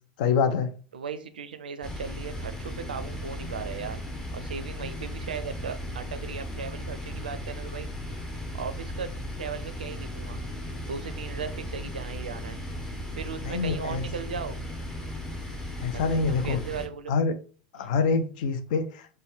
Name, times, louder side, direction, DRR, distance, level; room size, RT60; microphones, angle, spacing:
voice 1, 0.2-0.7 13.4-14.0 15.8-16.6 17.1-17.4 17.7-19.2, left 5 dB, 55° left, 0.5 m, -26 dB
voice 2, 0.9-4.0 4.3-7.9 8.5-9.1 9.4-10.4 10.8-12.6 13.2-14.6 16.1-17.1 17.7-17.9, right 6 dB, 70° right, 0.4 m, -37 dB
sound 1, 1.8-16.9, left 1 dB, 10° left, 0.8 m, -36 dB
4.2 x 2.2 x 3.2 m
figure-of-eight pair, 85°, 5 cm